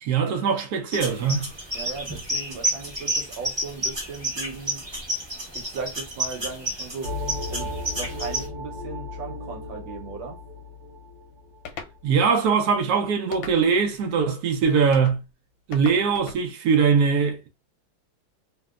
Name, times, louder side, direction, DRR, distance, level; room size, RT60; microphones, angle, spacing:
voice 1, 0.0-1.5 12.0-15.2 15.7-17.5, right 6 dB, 85° right, 0.8 m, -21 dB
sound 1, 0.9-8.4, right 1 dB, 25° right, 0.5 m, -30 dB
voice 2, 1.7-4.8 5.5-7.1 7.5-7.7 7.9-10.4, right 4 dB, 70° right, 1.4 m, -37 dB
sound 2, 7.0-12.3, left 2 dB, 45° right, 1.4 m, -35 dB
sound 3, 11.7-12.0 13.3-13.9 14.9-15.2 15.7-16.4, left 6 dB, 75° left, 1.2 m, -39 dB
3.1 x 2.7 x 2.4 m
omnidirectional pair, 2.4 m